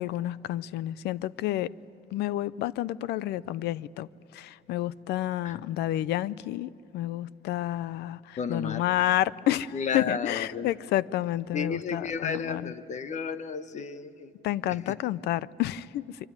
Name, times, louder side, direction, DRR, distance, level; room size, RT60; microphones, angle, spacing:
voice 1, 0.0-1.7 2.1-4.1 4.3-12.7 14.4-16.2, left 14 dB, 80° left, 0.6 m, -30 dB
voice 2, 8.4-8.8 9.7-10.7 11.5-14.3 14.7-15.0, left 6 dB, 45° left, 1.3 m, -33 dB
25.0 x 24.5 x 9.7 m
cardioid pair, 110°, 17 cm